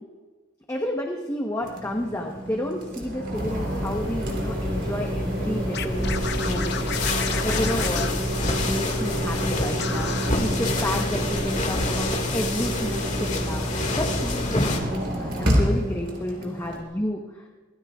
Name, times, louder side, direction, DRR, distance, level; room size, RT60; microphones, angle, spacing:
voice 1, 0.7-6.1 6.4-6.8 7.4-8.1 8.7-17.5, left 1 dB, 15° left, 0 dB, 1.0 m, -31 dB
sound 1, 1.6-16.8, right 1 dB, 65° right, 3.5 m, -29 dB
sound 2, 3.3-14.8, left 2 dB, 40° left, 1.9 m, -29 dB
Scratching (performance technique), 5.7-9.1 9.3-9.5 9.8-10.3, left 7 dB, 60° left, 0.8 m, -33 dB
24.5 x 18.0 x 2.4 m, 1.4 s
head